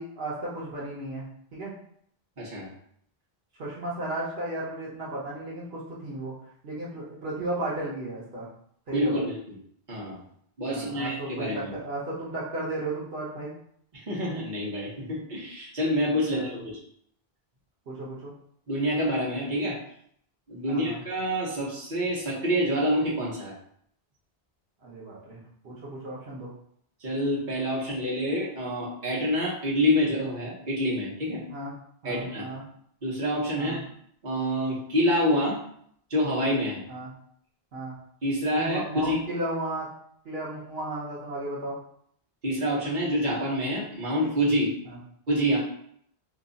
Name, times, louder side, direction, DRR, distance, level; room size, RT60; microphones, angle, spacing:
voice 1, 0.0-1.7 3.6-6.3 6.6-8.5 8.9-9.2 10.7-13.5 16.3-16.6 17.9-18.3 20.7-21.0 24.8-26.5 31.5-31.8 32.0-32.6 33.6-33.8 36.9-37.1 37.7-38.0 38.5-39.9 40.2-41.8, right 1 dB, 75° right, -6 dB, 1.2 m, -34 dB
voice 2, 2.4-2.7 8.9-9.4 9.9-10.2 10.6-11.7 13.9-16.8 18.7-19.8 20.5-23.5 27.0-31.4 32.0-32.5 33.0-33.8 34.2-35.6 36.1-36.8 38.2-39.2 42.4-44.7 45.3-45.6, equal, 50° right, -5 dB, 1.2 m, -27 dB
2.9 x 2.3 x 3.9 m, 0.66 s
omnidirectional pair, 1.0 m